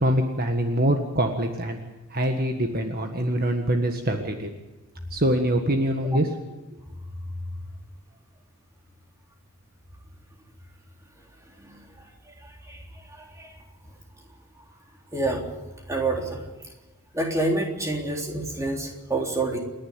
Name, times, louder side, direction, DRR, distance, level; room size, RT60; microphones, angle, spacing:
voice 1, 0.0-1.8 2.1-4.5 5.1-6.3, right 1 dB, 40° right, 4 dB, 1.6 m, -24 dB
voice 2, 12.4-12.8 13.1-13.5 15.1-15.4 15.9-16.4 17.1-19.6, right 2 dB, 15° right, 1 dB, 3.6 m, -28 dB
28.5 x 11.0 x 9.6 m, 1.1 s
head